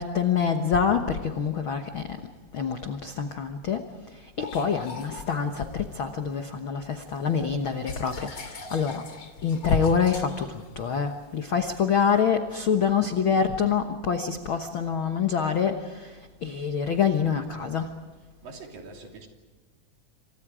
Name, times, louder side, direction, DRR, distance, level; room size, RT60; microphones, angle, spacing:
voice 1, 0.0-2.1 2.5-3.8 4.4-9.0 9.4-10.5 10.8-16.1 16.4-17.9, left 6 dB, 80° left, 6 dB, 1.1 m, -26 dB
sound 1, 4.4-6.5 6.9-12.2, left 4 dB, 40° left, 3.0 m, -44 dB
voice 2, 18.2-19.3, right 3 dB, 65° right, 2 dB, 4.8 m, -44 dB
28.5 x 26.0 x 5.0 m, 1.4 s
omnidirectional pair, 4.2 m